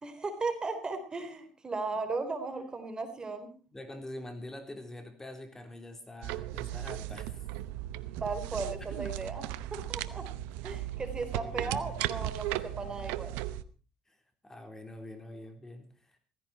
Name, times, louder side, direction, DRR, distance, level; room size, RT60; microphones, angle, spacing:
voice 1, 0.0-3.5 8.2-10.2 10.6-13.3, right 3 dB, 30° right, 8 dB, 4.1 m, -36 dB
voice 2, 3.7-7.4 11.3-12.0 14.1-14.2 14.4-16.2, left 1 dB, 15° left, 6 dB, 4.0 m, -45 dB
sound 1, 6.2-13.6, right 14 dB, 80° right, 0.8 m, -36 dB
16.5 x 15.5 x 4.4 m, 0.36 s
hypercardioid pair, 65°, 3 cm